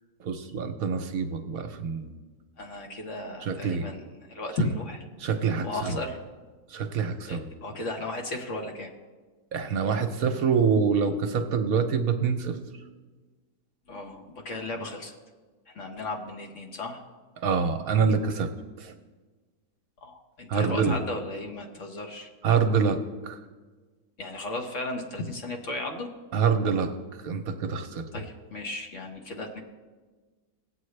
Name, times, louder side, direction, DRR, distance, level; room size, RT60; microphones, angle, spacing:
voice 1, 0.2-2.1 3.4-3.9 5.2-6.0 6.7-7.5 9.5-12.6 17.4-18.5 18.8-18.9 20.5-21.0 22.4-23.4 26.3-28.0, right 6 dB, 65° right, 7 dB, 1.1 m, -26 dB
voice 2, 2.6-5.0 5.6-6.2 7.3-8.9 13.9-15.1 15.7-17.0 20.0-22.3 24.2-26.1 28.1-29.6, left 2 dB, 50° left, 2 dB, 1.4 m, -35 dB
19.0 x 8.0 x 3.2 m, 1.3 s
omnidirectional pair, 1.8 m